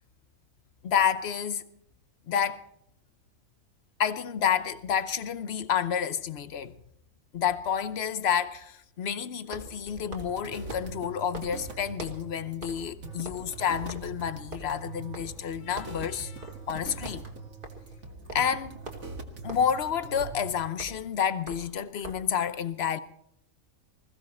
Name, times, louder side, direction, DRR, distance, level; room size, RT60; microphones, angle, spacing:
voice 1, 0.8-1.7 2.3-2.6 4.0-6.7 7.3-17.2 18.3-18.7 19.4-23.0, left 8 dB, 55° left, 1.0 m, -29 dB
sound 1, 9.4-12.3 12.6-12.9 13.2-15.5 15.8-16.1 16.4-16.7 17.0-22.4, right 1 dB, 40° right, 2.0 m, -44 dB
sound 2, 9.9-20.5, right 3 dB, 60° right, 1.9 m, -43 dB
20.0 x 15.5 x 4.3 m
omnidirectional pair, 1.4 m